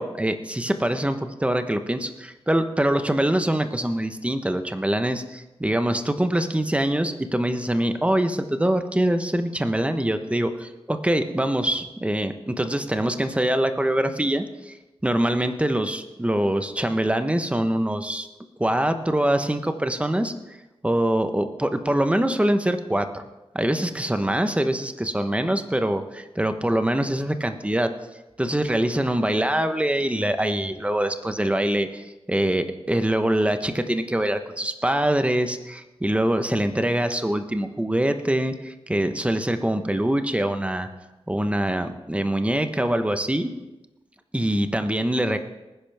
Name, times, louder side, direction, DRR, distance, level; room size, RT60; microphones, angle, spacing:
voice 1, 0.0-14.7 15.0-18.3 18.6-20.3 20.8-23.2 23.5-27.9 28.4-40.9 41.3-43.5 44.3-45.4, right 1 dB, 10° right, 8 dB, 1.0 m, -24 dB
19.5 x 10.5 x 3.5 m, 1.0 s
wide cardioid pair, 75°, 11 cm